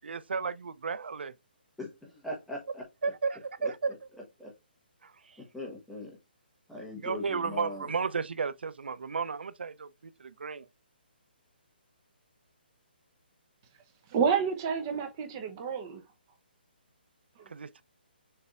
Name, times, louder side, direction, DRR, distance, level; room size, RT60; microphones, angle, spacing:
voice 1, 0.0-1.3 3.0-3.9 5.0-5.4 6.9-10.7 17.5-17.8, right 5 dB, 75° right, 0.6 m, -34 dB
voice 2, 1.8-3.1 3.6-3.7 4.4-4.5 5.4-6.2 6.7-7.9, left 1 dB, ahead, 1.1 m, -41 dB
voice 3, 14.1-16.0 17.4-17.5, right 6 dB, 20° right, 0.8 m, -29 dB
6.7 x 3.3 x 2.4 m
hypercardioid pair, 170°, 6 cm